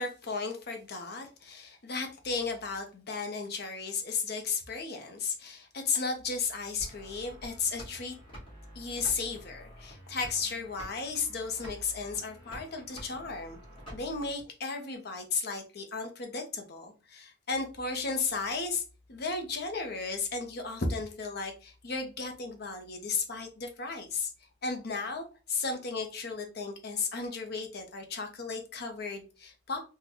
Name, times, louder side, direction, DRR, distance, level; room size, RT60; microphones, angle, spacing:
voice 1, 0.0-8.2 8.7-13.6 13.9-18.8 19.1-24.3 24.6-29.8, left 4 dB, 55° left, 0.7 m, -34 dB
sound 1, 6.8-14.4, equal, 25° left, 1.6 m, -48 dB
3.7 x 2.2 x 2.8 m
head